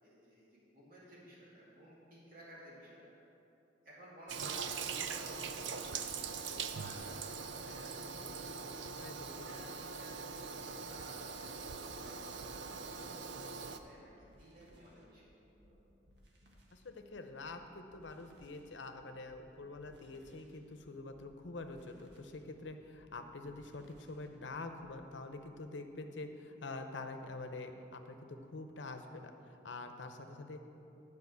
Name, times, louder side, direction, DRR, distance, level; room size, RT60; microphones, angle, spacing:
voice 1, 0.0-3.1 3.8-8.0 9.2-15.8, equal, 50° right, -7 dB, 2.7 m, -56 dB
Toilet flush, 4.3-13.8, right 5 dB, 85° right, 0.6 m, -42 dB
voice 2, 9.0-9.5 16.7-30.7, left 2 dB, 80° left, 7 dB, 0.8 m, -46 dB
sound 1, 10.4-25.1, equal, 65° right, 1.5 m, -65 dB
11.0 x 5.2 x 8.0 m, 2.9 s
head